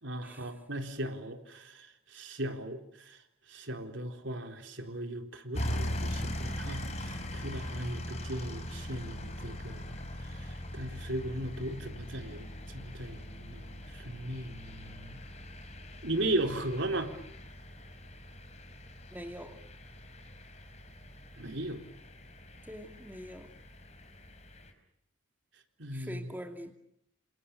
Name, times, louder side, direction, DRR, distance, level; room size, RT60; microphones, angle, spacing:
voice 1, 0.0-1.9 2.1-3.2 3.5-10.0 10.3-10.5 10.7-15.2 16.0-17.1 21.4-21.8 25.8-26.4, right 1 dB, 65° right, 5 dB, 4.1 m, -37 dB
sound 1, 5.5-24.7, left 1 dB, 35° left, 4.9 m, -41 dB
voice 2, 19.1-19.6 22.7-23.5 25.9-26.7, equal, 10° right, 5 dB, 2.6 m, -44 dB
29.5 x 28.0 x 7.0 m, 0.75 s
head